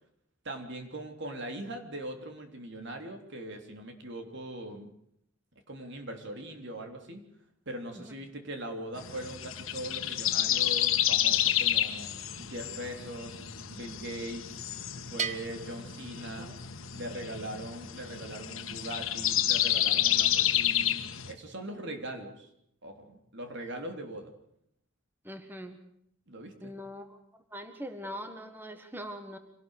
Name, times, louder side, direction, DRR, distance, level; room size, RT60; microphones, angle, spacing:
voice 1, 0.4-4.9 5.7-7.2 7.7-13.4 13.7-14.6 15.1-16.5 17.0-22.5 22.8-24.3 26.3-26.8, right 1 dB, 60° right, 5 dB, 3.5 m, -41 dB
sound 1, 9.0-21.3, left 11 dB, 80° left, 1.5 m, -30 dB
Bell, 15.2-16.9, right 6 dB, 35° right, 1.1 m, -38 dB
voice 2, 25.2-25.8 26.6-27.2 27.5-29.4, equal, 10° right, 7 dB, 1.5 m, -42 dB
26.0 x 18.0 x 6.6 m, 0.72 s
head